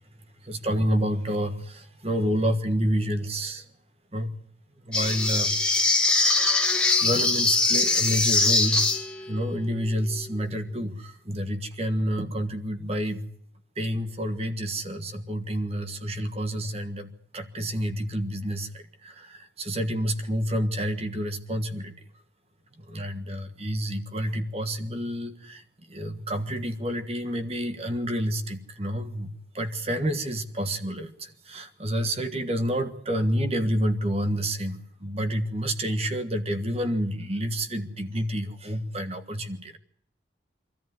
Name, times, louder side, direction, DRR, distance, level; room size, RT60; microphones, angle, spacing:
voice 1, 0.4-3.7 4.1-4.3 4.8-5.9 7.0-8.9 9.3-13.2 13.7-21.9 22.8-39.8, equal, 30° right, 8 dB, 1.5 m, -29 dB
sound 1, 4.9-9.3, left 3 dB, 5° left, 1.5 m, -22 dB
24.5 x 14.0 x 9.5 m, 0.70 s
head